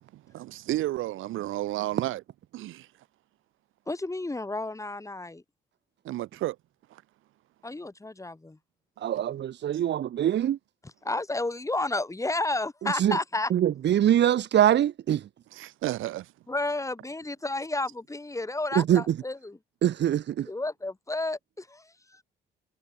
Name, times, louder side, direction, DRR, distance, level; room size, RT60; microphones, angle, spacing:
voice 1, 0.0-2.2 2.5-2.9 6.0-6.6 6.9-7.0 9.1-9.2 15.5-16.3, right 15 dB, 90° right, 4.5 m, -32 dB
voice 2, 3.9-5.4 7.6-8.6 10.8-13.5 16.5-19.6 20.5-22.2, left 2 dB, 15° left, 3.7 m, -31 dB
voice 3, 9.0-10.6 12.8-13.2 13.5-15.3 18.7-19.2 19.8-20.5, right 11 dB, 60° right, 1.1 m, -23 dB
cardioid pair, 90°, 20 cm